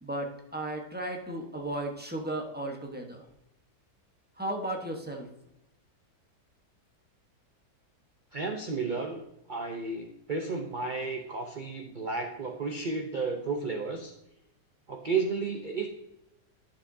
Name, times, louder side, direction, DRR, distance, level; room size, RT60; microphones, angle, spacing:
voice 1, 0.0-3.2 4.4-5.3, right 1 dB, 10° right, 1 dB, 0.8 m, -35 dB
voice 2, 8.3-9.2 9.5-14.1 14.9-15.9, right 4 dB, 55° right, 3 dB, 0.5 m, -32 dB
11.0 x 6.8 x 2.7 m, 0.85 s
omnidirectional pair, 1.9 m